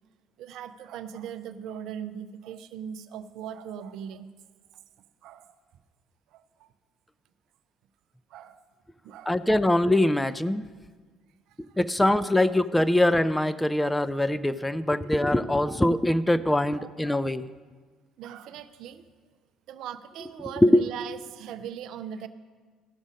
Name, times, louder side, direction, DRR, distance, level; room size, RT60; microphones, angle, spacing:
voice 1, 0.4-4.3 5.2-5.5 6.3-6.7 8.3-8.6 9.0-9.7 12.1-12.6 13.8-14.2 15.7-15.8 16.8-17.3 18.2-19.1 19.7-22.3, right 9 dB, 60° right, 12 dB, 0.5 m, -40 dB
voice 2, 9.3-10.6 11.8-17.4 20.6-20.9, left 1 dB, 10° left, 13 dB, 0.4 m, -23 dB
14.5 x 6.2 x 5.0 m, 1.5 s
figure-of-eight pair, 50°, 0 cm